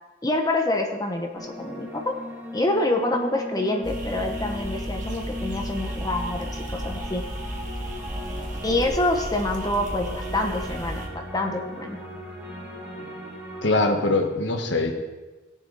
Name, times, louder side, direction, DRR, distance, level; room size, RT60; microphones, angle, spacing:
voice 1, 0.2-2.1 2.5-7.2 8.6-12.0, left 1 dB, 20° left, 3 dB, 1.0 m, -26 dB
sound 1, 1.3-13.8, left 1 dB, 10° right, 2.7 m, -38 dB
sound 2, 3.8-11.1, equal, 40° right, 1.7 m, -34 dB
voice 2, 13.6-14.9, left 2 dB, 65° left, 4 dB, 1.3 m, -22 dB
18.0 x 7.1 x 4.1 m, 1.2 s
head